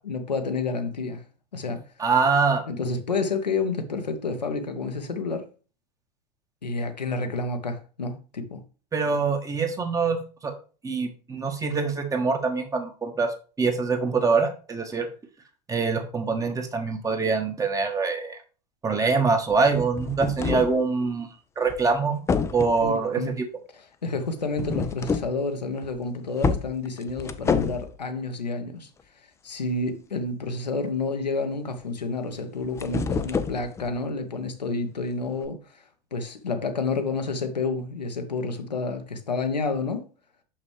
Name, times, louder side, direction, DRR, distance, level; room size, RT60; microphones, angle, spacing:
voice 1, 0.0-1.2 1.5-1.9 2.7-5.5 6.6-8.6 22.8-23.3 23.7-28.9 29.4-35.8 36.1-40.0, left 3 dB, 80° left, 0.9 m, -29 dB
voice 2, 2.0-2.6 8.9-10.2 10.4-10.5 10.8-13.3 13.6-15.1 15.7-18.4 18.8-21.3 21.6-22.3 22.5-23.3, right 4 dB, 15° right, 1.1 m, -24 dB
sound 1, 19.5-20.8 21.7-21.9 22.3-22.9 24.5-25.4 25.8-26.0 26.4-28.0 32.4-34.0 35.4-35.5, left 5 dB, 15° left, 0.4 m, -28 dB
6.1 x 5.7 x 3.2 m
figure-of-eight pair, 80°, 21 cm